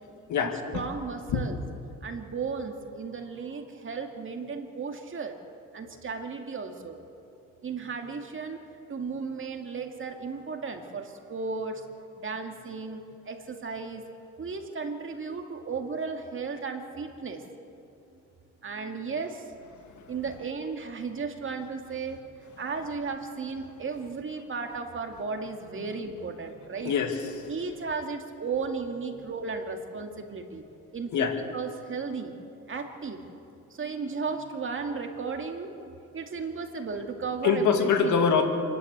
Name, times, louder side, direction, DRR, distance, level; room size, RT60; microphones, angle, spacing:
voice 1, 0.4-1.6 2.0-5.4 5.7-7.0 7.6-8.6 8.9-11.9 12.2-14.0 14.4-17.4 18.6-19.4 20.1-22.2 22.6-26.9 27.5-30.7 30.9-32.3 32.7-33.2 33.7-38.2, right 4 dB, 40° right, 4 dB, 2.3 m, -35 dB
voice 2, 26.8-27.5 31.1-31.4 37.4-38.4, left 6 dB, 75° left, 4 dB, 2.4 m, -24 dB
27.5 x 11.5 x 8.2 m, 2.8 s
cardioid pair, 90°, 30 cm